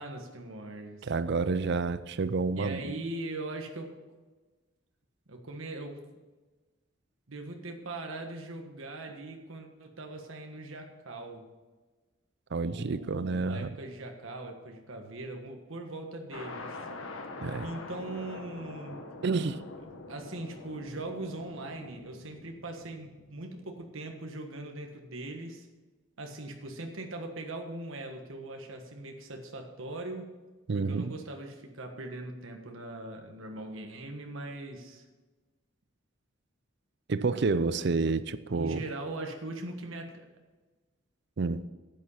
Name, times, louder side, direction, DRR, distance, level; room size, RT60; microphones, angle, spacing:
voice 1, 0.0-1.1 2.6-4.0 5.3-6.0 7.3-11.5 12.6-16.8 17.6-19.0 20.1-25.7 26.2-30.3 30.7-35.0 38.5-40.2, right 2 dB, 80° right, 3 dB, 1.4 m, -40 dB
voice 2, 1.0-2.9 12.5-13.7 17.4-17.7 19.2-19.6 30.7-31.1 37.1-38.8 41.4-41.6, right 4 dB, 55° right, 14 dB, 0.5 m, -29 dB
sound 1, 16.3-23.9, left 3 dB, 90° left, 1.4 m, -44 dB
10.5 x 9.3 x 5.6 m, 1.3 s
head